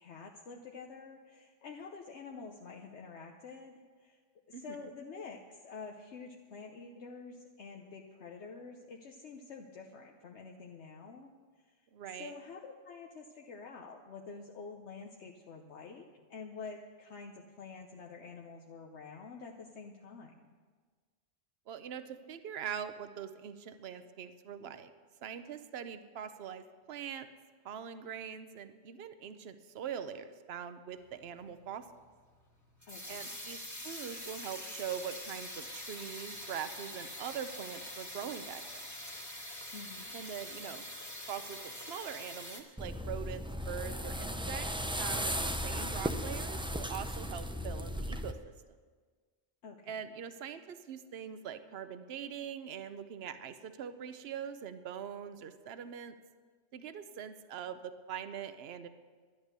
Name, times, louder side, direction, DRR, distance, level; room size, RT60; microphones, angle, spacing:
voice 1, 0.0-4.2 4.5-11.3 11.6-11.8 12.2-20.5 32.9-33.3 39.7-40.1 49.6-50.1, left 4 dB, 75° left, 1 dB, 1.1 m, -48 dB
voice 2, 11.9-12.3 21.7-24.9 25.2-27.3 27.6-31.9 33.1-38.8 40.1-40.8 41.3-44.7 45.0-48.4 49.9-56.2 56.7-58.9, right 8 dB, 65° right, 11 dB, 1.0 m, -43 dB
sound 1, 31.0-42.6, left 1 dB, 15° left, 1.3 m, -45 dB
sound 2, 42.8-48.3, equal, 10° right, 0.4 m, -36 dB
11.5 x 11.0 x 6.7 m, 1.5 s
omnidirectional pair, 1.2 m